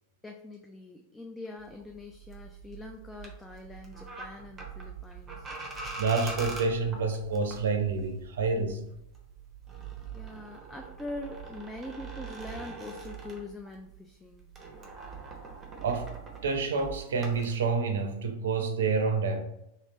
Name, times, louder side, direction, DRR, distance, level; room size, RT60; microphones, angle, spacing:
voice 1, 0.2-5.5 10.1-14.5, left 2 dB, 10° left, 0.3 m, -43 dB
sound 1, 1.6-14.0 14.2-17.5, right 4 dB, 20° right, 0.8 m, -43 dB
voice 2, 6.0-8.9 15.8-16.2 16.4-19.4, right 4 dB, 60° right, 0.5 m, -28 dB
2.8 x 2.6 x 2.9 m
figure-of-eight pair, 90°, 0 cm